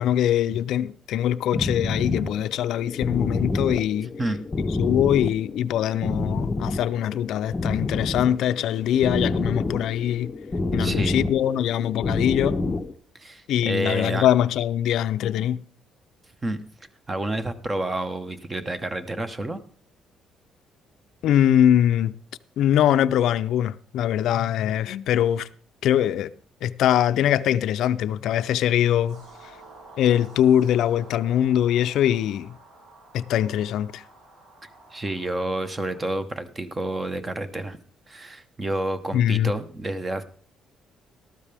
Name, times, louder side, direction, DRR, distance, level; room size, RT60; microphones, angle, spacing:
voice 1, 0.0-4.1 4.8-10.3 10.7-12.8 13.5-15.6 21.2-22.1 22.6-25.5 25.8-26.3 26.6-29.2 30.0-32.6 33.1-34.0 39.1-39.5, left 11 dB, 75° left, 0.5 m, -22 dB
sound 1, 1.5-12.9, left 2 dB, 25° left, 0.7 m, -28 dB
voice 2, 10.8-11.2 13.1-14.3 16.4-16.6 17.1-19.6 34.9-37.8 38.1-40.2, right 2 dB, 20° right, 1.1 m, -29 dB
sound 2, 29.1-36.2, right 2 dB, 80° right, 7.1 m, -50 dB
13.5 x 12.5 x 3.5 m
cardioid pair, 125°, 0 cm